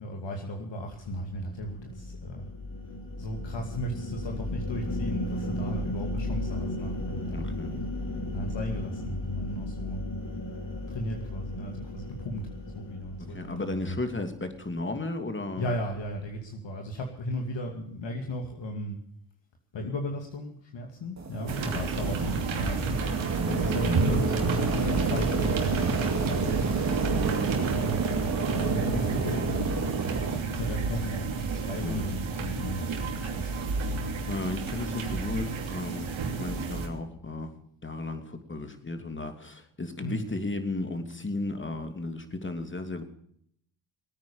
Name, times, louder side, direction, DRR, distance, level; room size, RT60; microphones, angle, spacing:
voice 1, 0.0-2.5 3.2-7.9 8.3-10.0 10.9-14.0 15.6-19.0 19.7-28.0 28.5-30.0 30.3-34.1 40.0-40.2, equal, 60° left, 2 dB, 2.5 m, -36 dB
sound 1, 1.0-14.5, left 1 dB, 40° left, 4.5 m, -35 dB
voice 2, 7.3-7.7 13.2-15.7 21.6-21.8 23.5-24.7 31.8-32.1 34.0-37.5 37.8-43.0, left 2 dB, 25° left, 7 dB, 2.9 m, -35 dB
sound 2, 21.2-30.4, right 4 dB, 35° right, 2.7 m, -30 dB
sound 3, 21.5-36.9, right 5 dB, 65° right, 3.0 m, -31 dB
19.5 x 9.2 x 7.1 m, 0.69 s
supercardioid pair, 60°, 50 cm